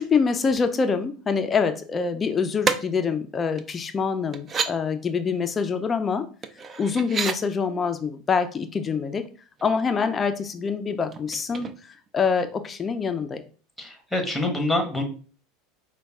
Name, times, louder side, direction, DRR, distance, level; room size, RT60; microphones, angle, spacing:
voice 1, 0.0-6.3 6.8-9.3 9.6-13.4, left 5 dB, 25° left, 9 dB, 0.4 m, -25 dB
sound 1, 2.6-2.8 3.6-3.7 4.3-4.7 6.4-7.4 9.1-9.3 9.6-10.1 11.1-12.1 12.4-12.5, right 5 dB, 30° right, 0.4 m, -29 dB
voice 2, 13.8-15.0, left 2 dB, ahead, 4 dB, 1.3 m, -26 dB
5.1 x 2.2 x 3.5 m, 0.39 s
hypercardioid pair, 95°, 0 cm